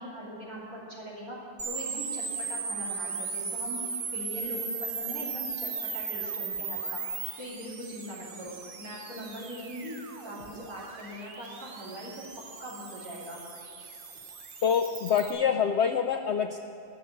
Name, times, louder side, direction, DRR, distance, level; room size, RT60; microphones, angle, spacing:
voice 1, 0.0-1.4 1.6-3.8 4.1-7.0 7.4-8.5 8.8-10.0 10.2-12.3 12.6-13.4, equal, 65° right, -7 dB, 3.3 m, -41 dB
sound 1, 1.6-15.3, right 5 dB, 40° right, 0.9 m, -37 dB
voice 2, 14.6-16.6, left 7 dB, 80° left, 7 dB, 0.6 m, -26 dB
12.0 x 6.4 x 9.6 m, 2.5 s
omnidirectional pair, 1.7 m